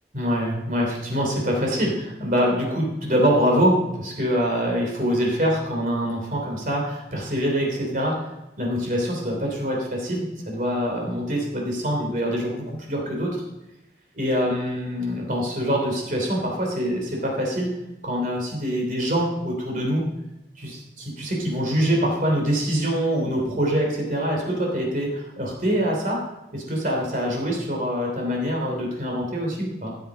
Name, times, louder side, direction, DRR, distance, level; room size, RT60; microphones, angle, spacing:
voice 1, 0.1-8.3 8.6-13.4 14.1-17.7 18.0-20.0 20.6-26.2 26.5-29.9, equal, 50° right, -1 dB, 3.2 m, -24 dB
15.0 x 7.9 x 4.9 m, 0.93 s
head